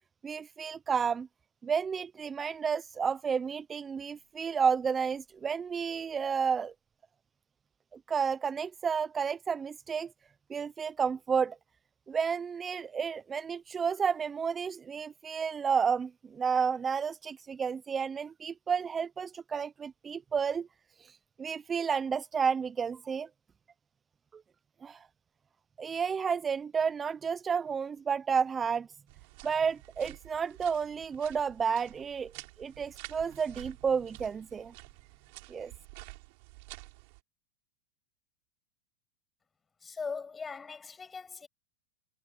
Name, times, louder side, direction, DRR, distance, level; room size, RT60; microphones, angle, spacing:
voice 1, 0.2-1.3 1.6-6.7 8.1-10.1 10.5-11.6 12.1-20.7 21.0-23.3 24.8-25.1 25.8-28.9 29.4-32.3 32.6-34.7 35.5-35.7, right 6 dB, 20° right, 0.5 m, -31 dB
sound 1, 29.1-37.2, right 28 dB, 60° right, 4.0 m, -50 dB
voice 2, 39.8-41.5, left 5 dB, 15° left, 7.6 m, -40 dB
supercardioid pair, 130°, 0 cm